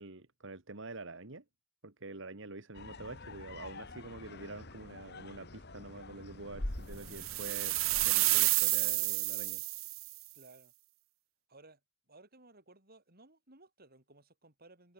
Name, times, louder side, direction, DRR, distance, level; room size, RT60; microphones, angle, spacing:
voice 1, 0.0-1.4 1.8-9.6, right 2 dB, 65° right, 2.2 m, -46 dB
sound 1, 2.7-8.1, left 1 dB, 55° left, 2.6 m, -45 dB
sound 2, 7.1-10.1, right 20 dB, 85° right, 0.7 m, -30 dB
voice 2, 10.3-10.7 11.5-11.8 12.1-14.9, right 2 dB, 50° right, 7.6 m, -59 dB
head